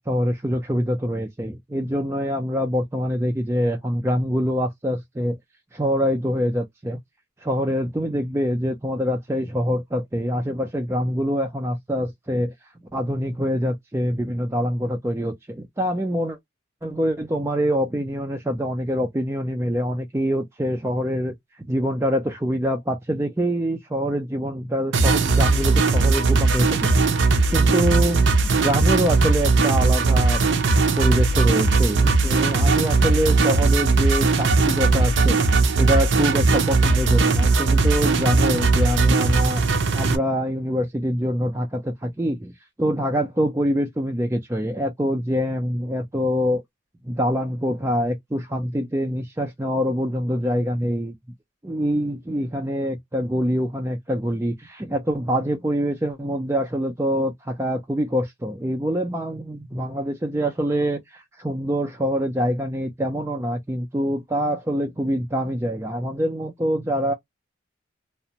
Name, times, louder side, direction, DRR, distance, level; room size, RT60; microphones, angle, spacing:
voice 1, 0.0-5.4 5.7-7.0 7.4-12.5 12.9-16.4 16.8-30.5 31.0-39.6 39.9-42.5 42.8-46.6 47.1-51.1 51.6-67.1, equal, 15° right, 0.4 m, -25 dB
sound 1, 24.9-40.2, right 3 dB, 65° right, 0.5 m, -19 dB
2.5 x 2.1 x 2.8 m
head